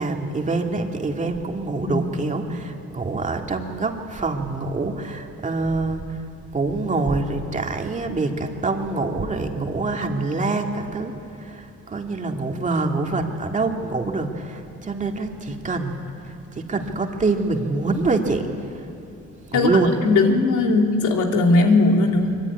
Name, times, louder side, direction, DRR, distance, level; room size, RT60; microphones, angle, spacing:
voice 1, 0.0-6.2 6.5-11.1 11.4-18.9 19.5-20.1, right 3 dB, 25° right, 3 dB, 2.1 m, -25 dB
voice 2, 20.0-22.4, left 3 dB, 85° left, 2 dB, 3.2 m, -18 dB
24.5 x 24.5 x 9.7 m, 2.9 s
cardioid pair, 165°, 29 cm